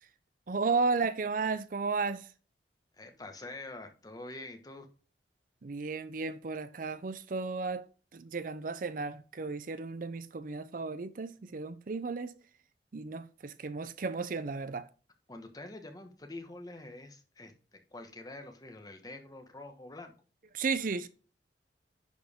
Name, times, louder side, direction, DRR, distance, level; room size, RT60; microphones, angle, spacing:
voice 1, 0.5-2.3 5.6-7.8 8.1-12.3 12.9-14.9 20.5-21.1, right 4 dB, 50° right, 0.5 m, -34 dB
voice 2, 2.9-4.9 15.3-20.1, left 2 dB, 20° left, 1.2 m, -46 dB
10.5 x 4.6 x 3.5 m
head